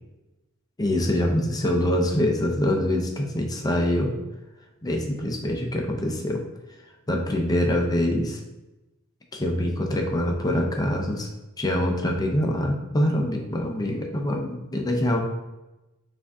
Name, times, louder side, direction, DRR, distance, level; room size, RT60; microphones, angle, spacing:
voice 1, 0.8-4.2 4.8-6.4 7.1-8.4 9.3-15.2, left 1 dB, 20° left, 1 dB, 0.5 m, -24 dB
4.7 x 2.6 x 3.5 m, 1.0 s
head